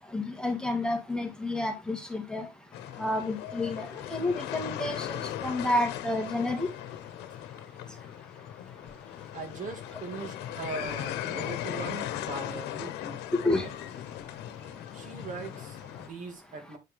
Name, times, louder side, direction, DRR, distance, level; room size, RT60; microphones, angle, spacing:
voice 1, 0.1-2.4 3.0-6.7 13.4-13.6, left 2 dB, 5° left, 1.8 m, -30 dB
sound 1, 2.7-16.1, left 12 dB, 90° left, 1.0 m, -38 dB
voice 2, 9.3-13.8 14.9-16.8, right 4 dB, 50° right, 2.2 m, -40 dB
8.3 x 5.0 x 3.4 m
cardioid pair, 110°, 17 cm